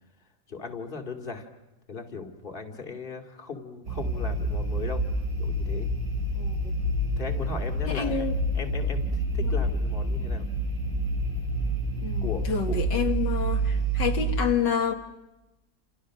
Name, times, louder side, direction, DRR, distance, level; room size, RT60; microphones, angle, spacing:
voice 1, 0.5-1.5 1.9-5.0 5.4-5.9 7.2-8.3 8.5-10.5 12.2-12.8, left 4 dB, 30° left, 4 dB, 2.6 m, -37 dB
sound 1, 3.9-14.4, right 1 dB, 75° right, 6.8 m, -28 dB
voice 2, 7.9-8.4 9.4-9.5 12.0-14.9, left 7 dB, 75° left, 4 dB, 2.4 m, -28 dB
30.0 x 28.5 x 6.4 m, 1.0 s
omnidirectional pair, 1.9 m